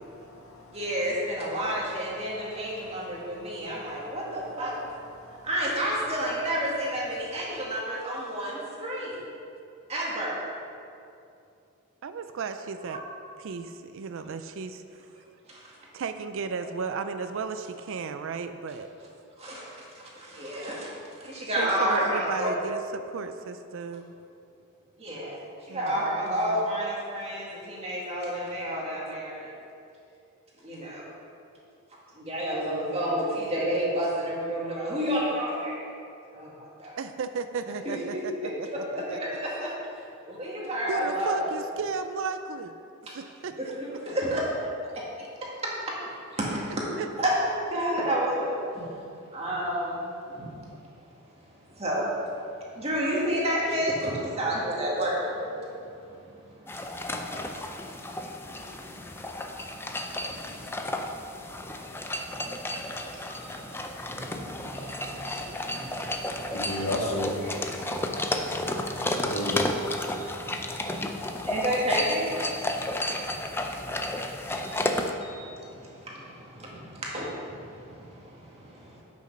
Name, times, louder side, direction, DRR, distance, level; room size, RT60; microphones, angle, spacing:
voice 1, 0.0-7.6 65.3-71.8, left 1 dB, 75° left, -1 dB, 1.5 m, -39 dB
voice 2, 0.7-4.7 5.4-9.2 9.9-10.4 12.9-13.0 15.5-15.7 19.4-20.9 21.2-22.5 25.0-25.4 25.7-29.5 30.6-31.0 32.1-35.8 36.3-37.0 37.9-38.0 38.7-38.8 39.0-41.5 43.6-44.7 46.3-46.7 47.2-48.9 49.3-50.6 51.8-52.1 52.7-61.2 61.6-66.5 67.9-69.2 70.1-79.0, equal, 30° right, -5 dB, 1.9 m, -31 dB
voice 3, 12.0-13.0 13.4-15.1 15.9-18.9 21.6-24.1 25.7-26.7 37.0-38.3 38.6-39.2 40.9-42.7 43.1-44.0 47.0-47.1 64.6-65.9 67.9-69.1, right 5 dB, 65° right, 9 dB, 0.4 m, -35 dB
sound 1, 56.7-75.1, left 1 dB, 10° left, 0.4 m, -32 dB
8.3 x 6.3 x 5.4 m, 2.6 s
head